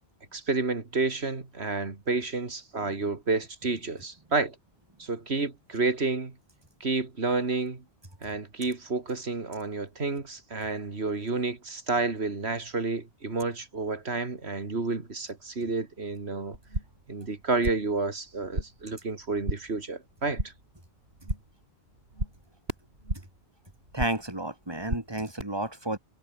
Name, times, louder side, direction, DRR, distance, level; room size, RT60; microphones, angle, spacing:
voice 1, 0.3-4.6 5.0-6.3 6.8-7.8 8.2-16.6 17.1-20.5, right 3 dB, 90° right, 2.9 m, -30 dB
sound 1, 16.5-17.1 17.4-18.0 18.3-18.9 19.2-19.8 20.1-20.7 21.0-21.6 21.9-23.4 23.7-24.4 24.6-25.4, right 1 dB, 70° right, 8.4 m, -35 dB
voice 2, 23.9-26.0, right 1 dB, 25° right, 3.7 m, -31 dB
omnidirectional pair, 1.1 m